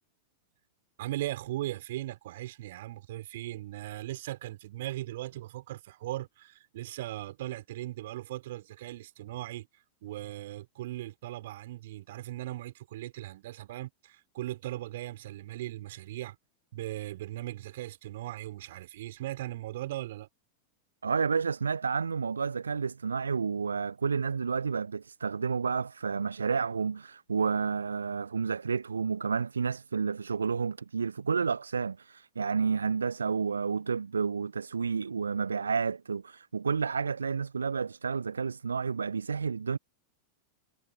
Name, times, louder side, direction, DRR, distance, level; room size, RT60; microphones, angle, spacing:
voice 1, 1.0-9.7 10.0-16.4 16.7-20.3, right 15 dB, 55° right, 5.7 m, -38 dB
voice 2, 21.0-39.8, right 5 dB, 75° right, 0.6 m, -30 dB
figure-of-eight pair, 90°, 0 cm